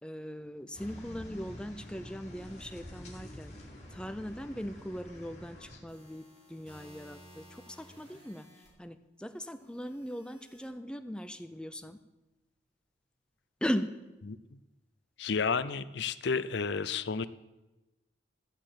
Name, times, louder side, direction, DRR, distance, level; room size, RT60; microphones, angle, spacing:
voice 1, 0.0-3.5 3.9-8.5 8.8-12.0 13.6-13.9, equal, 5° left, 10 dB, 0.5 m, -39 dB
sound 1, 0.7-5.8, equal, 35° left, 2.8 m, -48 dB
sound 2, 5.9-8.7 9.6-10.7, equal, 35° right, 5.3 m, -56 dB
voice 2, 15.2-17.3, left 5 dB, 60° left, 14 dB, 0.5 m, -31 dB
13.0 x 6.8 x 7.7 m, 1.1 s
head